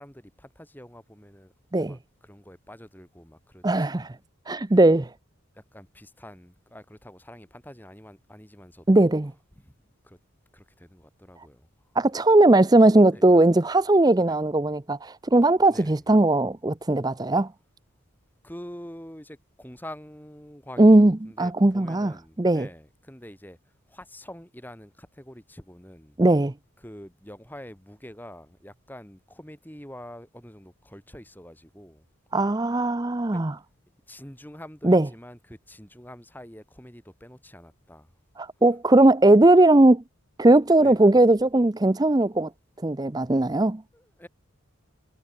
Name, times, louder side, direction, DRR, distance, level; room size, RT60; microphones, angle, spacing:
voice 1, 0.0-4.1 4.7-4.8 5.5-9.1 9.6-9.7 10.0-10.2 10.5-11.7 13.1-13.3 14.2-14.4 15.7-16.1 18.4-23.6 23.9-26.2 26.8-32.0 33.3-33.4 34.1-38.1 40.8-41.1 43.9-44.3, equal, 10° left, 7.4 m, -46 dB
voice 2, 3.6-4.2 4.5-5.1 8.9-9.3 12.0-17.5 20.8-22.1 22.4-22.7 26.2-26.5 32.3-33.5 34.8-35.1 38.4-40.0 40.4-42.5 42.8-43.8, right 2 dB, 20° right, 0.5 m, -19 dB
head